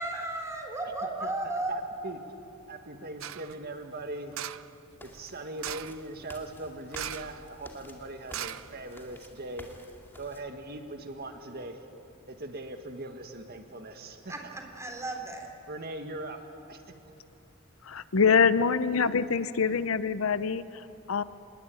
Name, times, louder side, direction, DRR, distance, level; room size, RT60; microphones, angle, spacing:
voice 1, 0.0-1.7 14.3-15.5, right 2 dB, 15° right, 2 dB, 3.7 m, -34 dB
voice 2, 1.0-2.4 2.7-4.3 5.0-9.7 10.1-11.8 12.3-14.3 15.7-16.4 16.7-16.8, right 2 dB, 50° right, 6 dB, 1.8 m, -40 dB
sound 1, 3.2-3.6 4.3-4.7 5.6-6.0 6.9-7.4 7.7-7.8 8.3-9.2 9.6-9.7, right 11 dB, 70° right, 0.6 m, -38 dB
sound 2, 5.0-10.4, left 1 dB, 10° left, 2.2 m, -51 dB
voice 3, 17.8-21.2, left 5 dB, 75° left, 14 dB, 0.8 m, -25 dB
27.0 x 21.0 x 9.1 m, 3.0 s
head